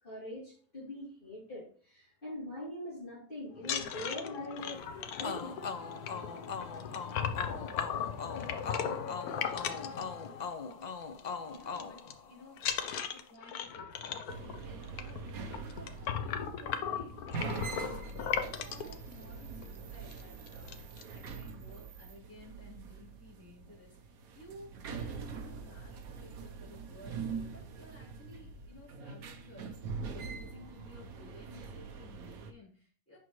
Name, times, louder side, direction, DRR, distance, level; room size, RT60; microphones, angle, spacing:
voice 1, 0.0-5.6, left 1 dB, 35° left, -9 dB, 3.4 m, -43 dB
sound 1, 3.6-10.7 11.0-11.3 11.5-12.1 12.6-18.9 19.6-19.7 20.0-20.2 20.5-21.0, left 8 dB, 90° left, 1.2 m, -37 dB
sound 2, 5.2-12.8, left 5 dB, 55° left, 0.4 m, -41 dB
voice 2, 11.4-12.0 12.3-17.4 17.7-17.9 18.3-33.2, left 1 dB, 10° left, -8 dB, 4.0 m, -55 dB
sound 3, 14.3-32.5, right 4 dB, 75° right, 1.2 m, -43 dB
8.1 x 5.9 x 3.1 m, 0.44 s
omnidirectional pair, 1.5 m